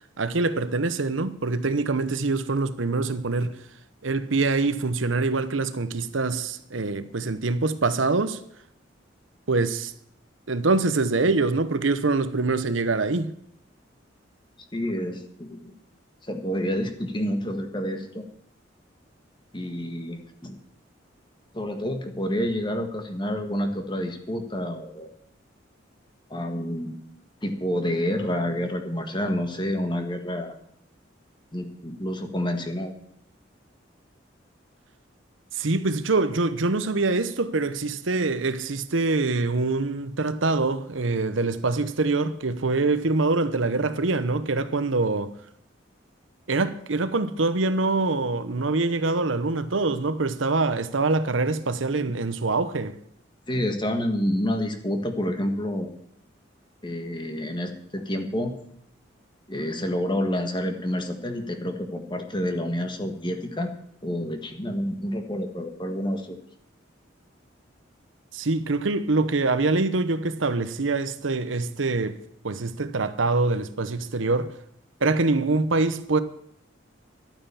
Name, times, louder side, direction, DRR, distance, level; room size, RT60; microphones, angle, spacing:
voice 1, 0.2-3.6 4.0-8.4 9.5-9.9 10.5-13.3 35.5-45.3 46.5-53.0 68.3-72.2 72.4-74.5 75.0-76.2, right 3 dB, 85° right, 0.9 m, -24 dB
voice 2, 14.7-15.7 16.3-18.2 19.5-20.6 21.5-25.1 26.3-27.0 27.4-30.5 31.5-32.9 53.5-55.9 56.8-58.5 59.5-63.7 64.0-66.4, equal, 25° left, 1.6 m, -28 dB
12.0 x 9.0 x 7.0 m
head